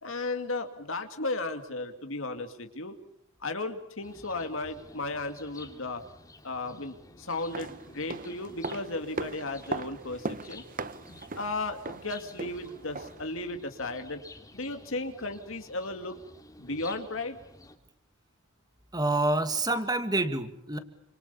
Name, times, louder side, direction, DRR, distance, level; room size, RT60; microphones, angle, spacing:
voice 1, 0.0-2.9 3.4-6.0 6.4-10.6 11.1-14.2 14.5-16.2 16.6-17.4, left 2 dB, 65° left, 6 dB, 2.5 m, -35 dB
sound 1, 4.0-17.8, left 2 dB, 15° left, 3.1 m, -52 dB
sound 2, 7.3-13.3 13.6-13.7, right 3 dB, 40° right, 1.1 m, -39 dB
voice 2, 18.9-20.8, right 2 dB, 20° right, 9 dB, 2.4 m, -27 dB
29.5 x 27.0 x 7.0 m, 0.77 s
head